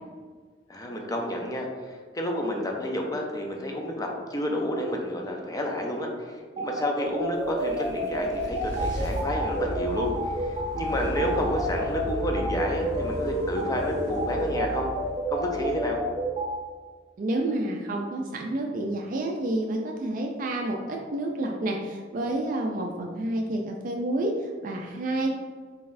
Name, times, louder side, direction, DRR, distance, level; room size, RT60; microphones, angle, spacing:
voice 1, 0.7-14.9 15.3-16.0, left 1 dB, 20° left, 1 dB, 0.5 m, -30 dB
sound 1, 6.6-16.5, right 1 dB, 30° right, 1.2 m, -30 dB
sound 2, 7.2-16.4, equal, 75° left, 1.4 m, -36 dB
voice 2, 17.2-25.4, right 1 dB, 50° right, 1 dB, 0.4 m, -29 dB
4.1 x 4.0 x 2.6 m, 1.5 s
head